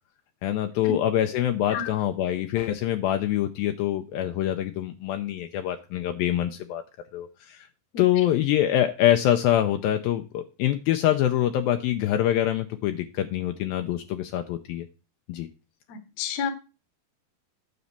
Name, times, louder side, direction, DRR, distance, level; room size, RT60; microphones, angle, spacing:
voice 1, 0.4-6.8 7.1-7.7 8.0-14.9 15.3-15.5, left 12 dB, 80° left, 7 dB, 2.2 m, -25 dB
voice 2, 15.9-16.5, left 7 dB, 60° left, 9 dB, 1.8 m, -30 dB
9.5 x 4.1 x 7.1 m, 0.32 s
omnidirectional pair, 4.5 m